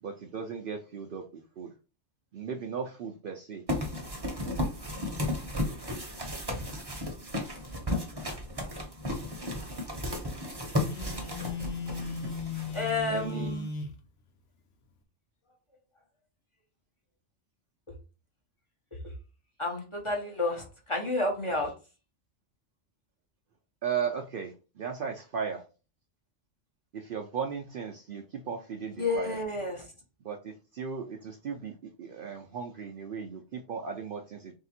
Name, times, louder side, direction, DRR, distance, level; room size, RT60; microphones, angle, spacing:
voice 1, 0.0-1.2 1.6-1.7 2.3-3.6 13.1-13.5 23.8-25.6 26.9-29.4 30.2-34.5, right 6 dB, 60° right, 3 dB, 0.6 m, -36 dB
sound 1, 3.7-13.2, left 1 dB, 25° right, 0.8 m, -34 dB
Telephone, 10.8-14.0, left 4 dB, 80° left, 1.1 m, -36 dB
voice 2, 12.7-13.7 19.6-21.7 29.0-29.8, left 2 dB, 30° left, 0 dB, 0.8 m, -30 dB
3.4 x 2.8 x 4.2 m, 0.34 s
omnidirectional pair, 1.2 m